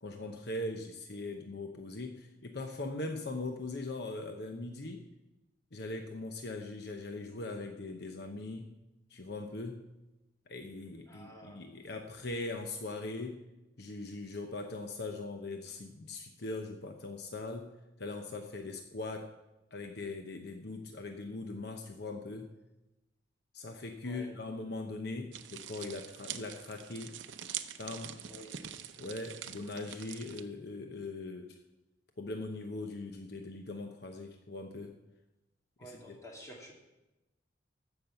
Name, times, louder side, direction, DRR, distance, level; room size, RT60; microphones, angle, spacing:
voice 1, 0.0-5.0 5.7-8.7 9.1-9.8 10.5-13.4 13.8-17.7 18.0-19.3 19.7-22.5 23.5-27.1 27.8-28.1 29.0-31.6 32.2-34.9 35.8-36.1, left 2 dB, 60° left, 4 dB, 0.9 m, -40 dB
voice 2, 11.1-11.7 24.0-24.3 28.3-28.6 35.8-36.7, equal, 15° left, -1 dB, 2.4 m, -50 dB
sound 1, 25.3-30.4, right 9 dB, 75° right, 0.7 m, -44 dB
15.0 x 6.1 x 7.0 m, 1.0 s
head